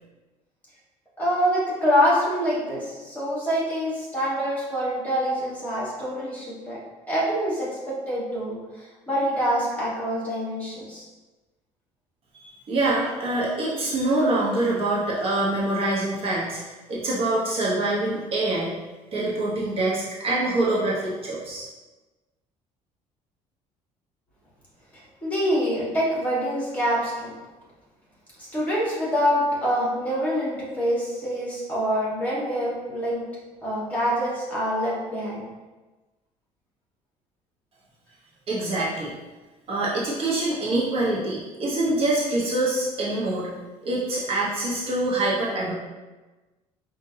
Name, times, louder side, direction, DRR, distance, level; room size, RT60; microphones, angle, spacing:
voice 1, 1.2-6.8 7.1-11.0 25.2-27.3 28.4-33.2 33.6-35.4, equal, 10° left, -7 dB, 1.5 m, -25 dB
voice 2, 12.3-16.6 16.9-18.8 19.1-21.6 38.5-39.1 39.7-43.5 43.8-45.7, right 2 dB, 45° right, -6 dB, 1.0 m, -25 dB
5.1 x 2.6 x 2.7 m, 1.2 s
cardioid pair, 130°, 13 cm